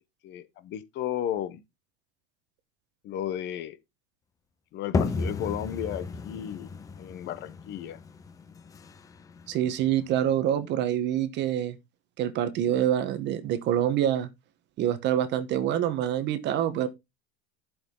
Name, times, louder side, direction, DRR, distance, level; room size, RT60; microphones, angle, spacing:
voice 1, 0.2-1.6 3.0-3.8 4.7-6.7 7.0-8.0, left 11 dB, 30° left, 0.9 m, -34 dB
sound 1, 4.9-10.4, left 4 dB, 10° left, 0.5 m, -34 dB
voice 2, 9.5-11.8 12.2-14.3 14.8-16.9, right 11 dB, 30° right, 1.0 m, -26 dB
11.5 x 6.3 x 3.6 m
cardioid pair, 175°, 34 cm